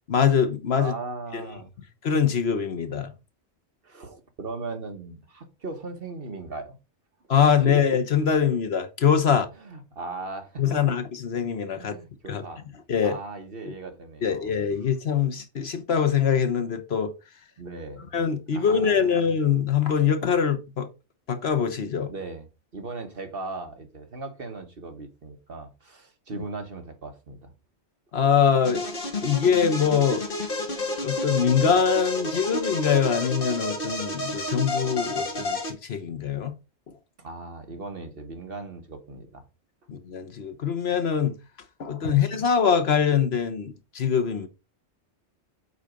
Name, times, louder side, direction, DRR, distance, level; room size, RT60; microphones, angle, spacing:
voice 1, 0.1-0.9 1.3-1.4 2.0-3.1 7.3-9.5 10.6-11.9 12.3-12.4 12.9-13.2 14.2-17.1 18.1-20.9 21.3-22.1 26.3-26.4 28.1-28.8 29.2-30.2 31.0-36.5 39.9-41.4 41.8-44.5, left 7 dB, 65° left, 1.3 m, -23 dB
voice 2, 0.8-1.7 3.8-6.7 7.6-7.7 9.6-10.6 11.7-12.6 13.0-14.5 17.6-18.1 18.5-19.1 22.1-22.5 22.7-27.5 37.2-39.4 42.1-42.2, right 3 dB, 55° right, 1.5 m, -38 dB
sound 1, 28.6-35.7, left 2 dB, 50° left, 1.9 m, -30 dB
8.3 x 4.1 x 5.1 m
omnidirectional pair, 1.2 m